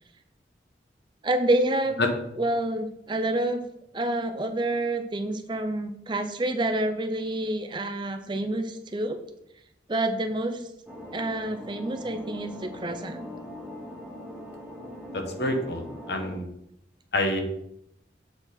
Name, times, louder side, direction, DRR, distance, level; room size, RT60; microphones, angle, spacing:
voice 1, 1.2-2.0 2.4-3.6 3.9-9.2 9.9-10.6 11.1-13.3, right 1 dB, 25° right, 7 dB, 0.5 m, -28 dB
sound 1, 10.9-16.4, left 1 dB, 5° right, 1.2 m, -41 dB
voice 2, 15.1-16.4 17.1-17.4, left 1 dB, 70° left, 4 dB, 1.2 m, -27 dB
7.7 x 4.4 x 4.3 m, 0.77 s
head